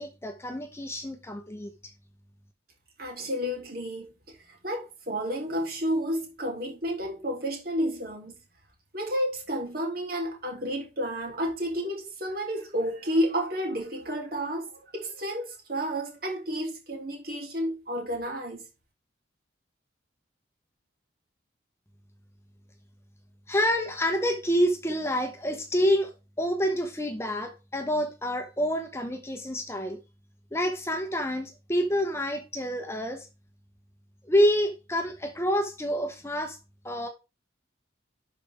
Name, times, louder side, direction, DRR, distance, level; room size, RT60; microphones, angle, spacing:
voice 1, 0.0-1.7 23.5-30.0 30.5-33.3 34.2-36.6 36.8-37.1, equal, 15° left, 0.9 m, -27 dB
voice 2, 3.0-8.3 8.9-18.7, equal, 50° right, 3.2 m, -31 dB
11.5 x 5.0 x 3.4 m
head